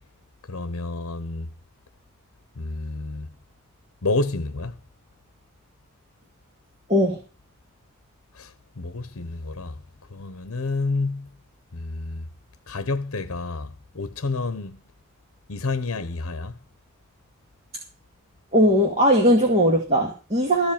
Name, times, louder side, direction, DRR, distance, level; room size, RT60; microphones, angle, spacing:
voice 1, 0.5-1.5 2.6-3.3 4.0-4.8 8.3-9.8 10.1-11.3 11.7-12.3 12.7-14.8 15.5-16.6, left 3 dB, 70° left, 0.9 m, -29 dB
voice 2, 6.9-7.2 18.5-20.7, equal, 30° right, 2.3 m, -19 dB
14.5 x 5.4 x 8.7 m
head